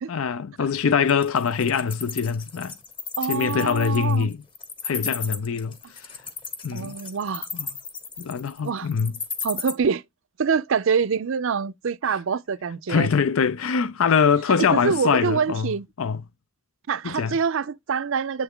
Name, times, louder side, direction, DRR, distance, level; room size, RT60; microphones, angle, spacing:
voice 1, 0.1-2.8 3.2-4.4 4.8-6.1 6.6-7.0 7.5-7.7 8.2-9.2 12.9-15.7 16.0-16.2 17.0-17.4, left 6 dB, 65° left, 0.4 m, -23 dB
Wild animals, 1.1-9.7, left 6 dB, 20° left, 1.0 m, -34 dB
voice 2, 3.2-4.3 6.7-7.5 8.6-8.9 9.4-10.0 10.4-13.1 14.6-15.9 16.9-18.4, right 6 dB, 60° right, 0.5 m, -25 dB
7.6 x 3.4 x 3.6 m
head